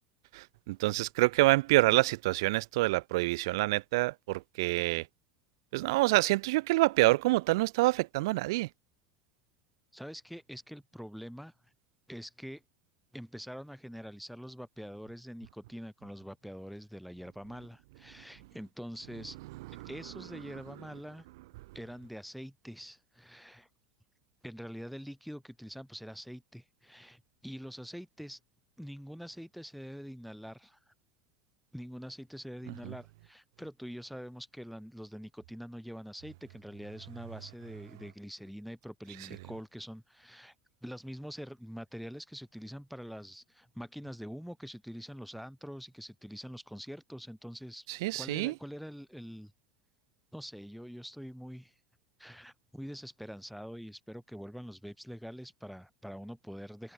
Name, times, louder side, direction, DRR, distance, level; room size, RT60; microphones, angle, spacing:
voice 1, 0.3-5.0 5.7-8.7 19.8-19.9 32.8-32.9 48.0-48.5, right 20 dB, 75° right, 0.6 m, -27 dB
voice 2, 9.9-11.5 12.1-12.6 13.1-19.4 19.8-21.2 21.7-23.7 24.4-28.4 28.8-30.8 31.7-40.5 40.8-47.9 48.1-49.5 50.3-51.7 52.2-56.9, equal, ahead, 1.7 m, -45 dB
supercardioid pair, 120°, 2 cm